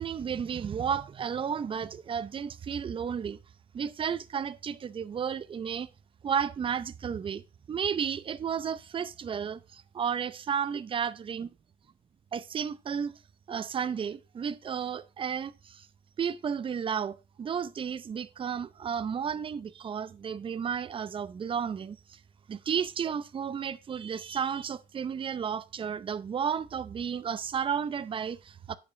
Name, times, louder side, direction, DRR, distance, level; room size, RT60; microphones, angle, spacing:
voice 1, 0.0-3.4 3.7-5.9 6.2-7.4 7.7-11.5 12.3-13.1 13.5-15.9 16.2-22.2 22.5-28.8, right 7 dB, 30° right, 0.6 m, -33 dB
9.4 x 5.6 x 5.0 m
cardioid pair, 110°, 17 cm